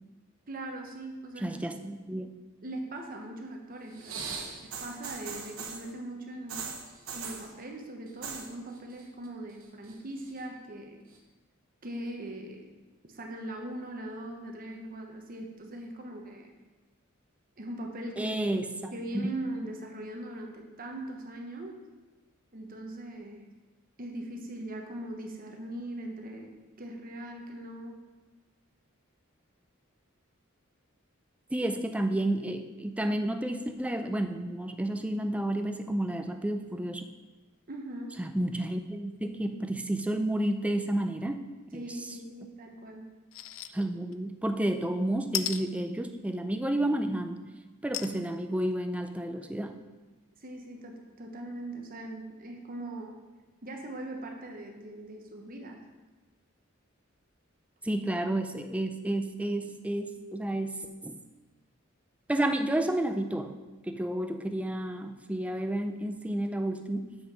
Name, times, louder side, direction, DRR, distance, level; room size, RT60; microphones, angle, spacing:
voice 1, 0.5-1.5 2.6-6.6 7.1-11.0 11.8-12.7 13.0-16.5 17.6-18.3 18.9-21.8 22.5-23.5 24.0-28.0 37.7-38.2 41.7-43.0 50.4-53.2 53.6-55.8, right 1 dB, 45° right, 2 dB, 1.0 m, -40 dB
voice 2, 1.4-2.3 18.2-19.4 31.5-37.1 38.2-42.2 43.7-47.4 47.8-49.8 57.8-61.2 62.3-63.6 63.8-67.2, right 1 dB, 5° right, 6 dB, 0.4 m, -31 dB
sound 1, 3.9-5.9 6.5-7.5 8.1-8.5 8.8-9.3 9.6-10.4 11.1-11.2, right 5 dB, 90° right, 1.2 m, -39 dB
sound 2, 43.3-43.7 44.1-44.2 45.3-45.6 47.9-48.2 48.8-48.9 49.1-49.2, left 12 dB, 65° left, 0.4 m, -33 dB
7.3 x 6.2 x 4.7 m, 1.2 s
head